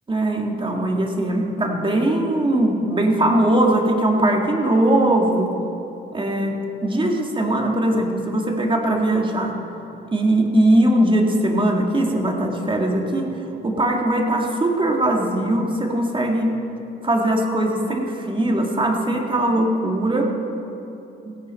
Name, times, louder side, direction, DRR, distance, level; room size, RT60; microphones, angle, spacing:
voice 1, 0.1-5.5 6.1-9.6 10.1-13.4 13.6-16.5 17.0-20.3 21.3-21.4, right 1 dB, 25° right, 2 dB, 1.9 m, -20 dB
16.5 x 9.3 x 5.6 m, 3.0 s
cardioid pair, 90°, 20 cm